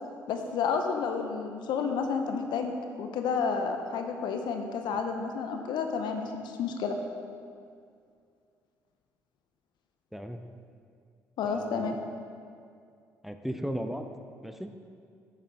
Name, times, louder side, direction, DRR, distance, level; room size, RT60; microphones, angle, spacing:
voice 1, 0.3-7.0 11.4-11.9, left 5 dB, 65° left, 5 dB, 0.8 m, -31 dB
voice 2, 11.4-12.1 13.2-14.1 14.4-14.7, equal, ahead, 6 dB, 0.6 m, -36 dB
9.0 x 6.8 x 4.9 m, 2.3 s
hypercardioid pair, 50°, 8 cm